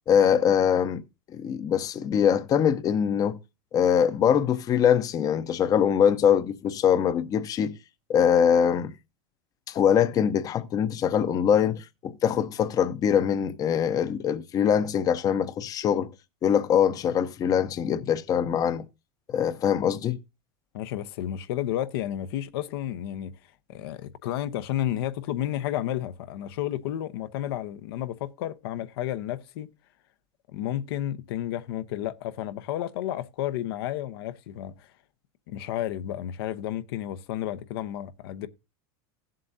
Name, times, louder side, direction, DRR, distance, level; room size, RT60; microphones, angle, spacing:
voice 1, 0.1-1.0 1.3-3.4 3.7-7.7 8.1-8.9 9.7-16.1 16.4-18.8 19.3-20.2, left 8 dB, 30° left, 0.7 m, -23 dB
voice 2, 20.7-23.3 23.7-29.7 30.5-34.9 35.5-38.5, left 12 dB, 75° left, 0.8 m, -32 dB
16.0 x 7.6 x 2.6 m
supercardioid pair, 140°, 13 cm